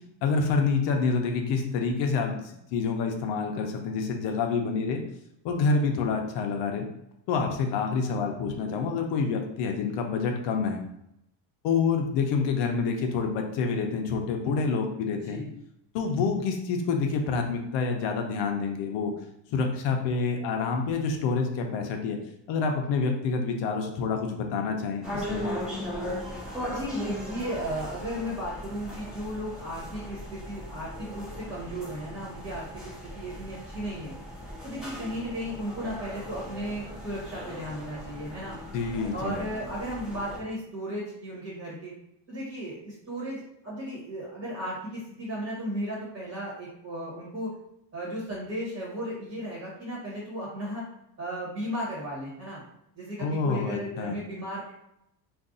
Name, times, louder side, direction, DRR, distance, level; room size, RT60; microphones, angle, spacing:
voice 1, 0.2-5.0 5.4-6.9 7.3-10.8 11.6-15.4 15.9-19.1 19.5-22.2 22.5-25.5 38.7-39.4 53.2-54.2, left 4 dB, 75° left, 3 dB, 0.6 m, -27 dB
sound 1, 25.0-40.4, left 1 dB, ahead, 0.8 m, -38 dB
voice 2, 26.7-34.1 34.6-38.6 39.1-41.9 42.3-47.5 47.9-50.8 51.2-52.6 52.9-54.7, equal, 30° right, -6 dB, 1.2 m, -35 dB
2.5 x 2.3 x 3.7 m, 0.80 s
cardioid pair, 150°, 43 cm